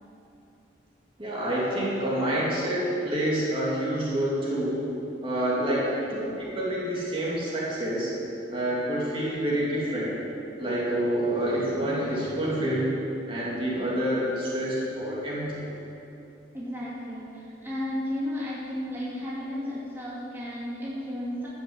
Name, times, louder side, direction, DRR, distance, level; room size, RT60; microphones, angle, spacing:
voice 1, 1.2-4.8 5.2-8.1 8.5-10.1 10.6-13.0 13.3-15.6 19.5-19.6, right 1 dB, 30° right, -6 dB, 2.7 m, -27 dB
voice 2, 16.5-21.5, left 1 dB, 10° right, -9 dB, 2.6 m, -33 dB
13.5 x 7.2 x 7.9 m, 2.9 s
head